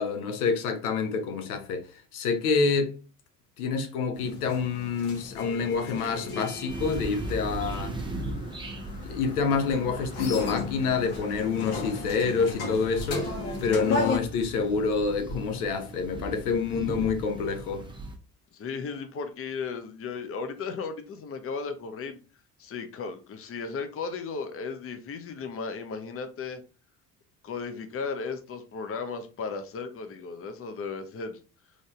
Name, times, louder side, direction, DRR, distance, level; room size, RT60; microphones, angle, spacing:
voice 1, 0.0-3.0 3.6-8.0 9.0-13.3 13.6-17.9, left 5 dB, 70° left, 0.9 m, -27 dB
sound 1, 4.2-14.2, left 3 dB, 55° left, 1.5 m, -35 dB
sound 2, 6.7-18.2, right 2 dB, 10° right, 0.9 m, -39 dB
voice 2, 18.5-22.2 22.6-26.6 27.4-31.4, left 5 dB, 30° left, 0.8 m, -35 dB
3.9 x 3.3 x 3.7 m
figure-of-eight pair, 55°, 47 cm